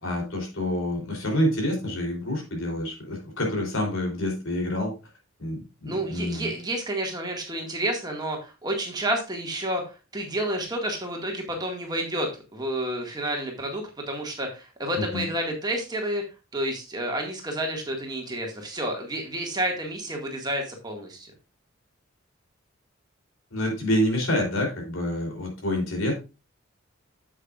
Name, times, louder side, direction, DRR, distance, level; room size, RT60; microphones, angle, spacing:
voice 1, 0.0-4.9 5.4-6.5 15.0-15.2 23.5-26.1, left 1 dB, 80° left, 1 dB, 3.5 m, -27 dB
voice 2, 5.9-16.2 16.5-21.3, right 1 dB, 20° right, 1 dB, 1.9 m, -30 dB
9.7 x 7.7 x 2.5 m, 0.28 s
head